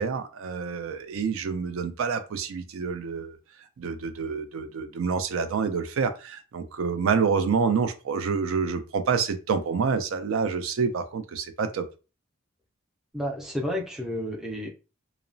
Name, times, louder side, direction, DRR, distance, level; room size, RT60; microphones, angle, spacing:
voice 1, 0.0-3.4 3.8-11.9, right 5 dB, 65° right, 0.3 m, -27 dB
voice 2, 13.1-14.7, left 1 dB, ahead, 0.4 m, -31 dB
2.8 x 2.0 x 2.5 m
head